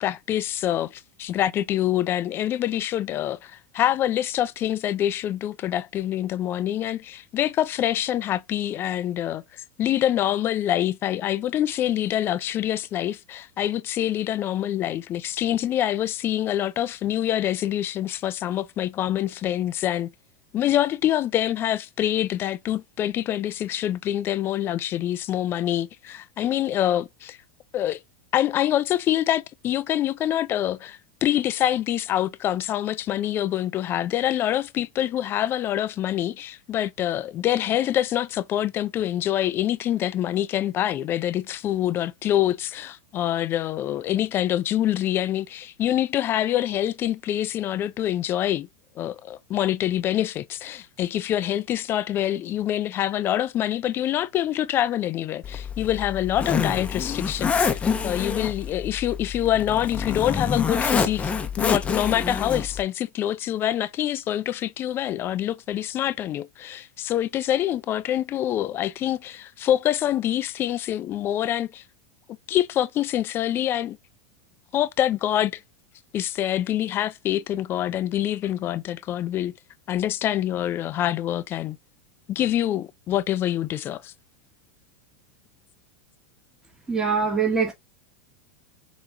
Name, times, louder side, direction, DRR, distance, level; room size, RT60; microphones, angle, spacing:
voice 1, 0.0-9.4 9.8-20.1 20.5-27.4 27.7-28.0 28.3-48.7 49.0-71.8 72.5-74.0 74.7-75.6 76.1-79.5 79.9-81.8 82.3-84.1, left 12 dB, 35° left, 0.4 m, -25 dB
Zipper (clothing), 55.4-62.8, left 6 dB, 20° left, 0.8 m, -27 dB
voice 2, 86.9-87.7, right 5 dB, 10° right, 1.7 m, -23 dB
6.8 x 3.1 x 2.5 m
hypercardioid pair, 110°, 7 cm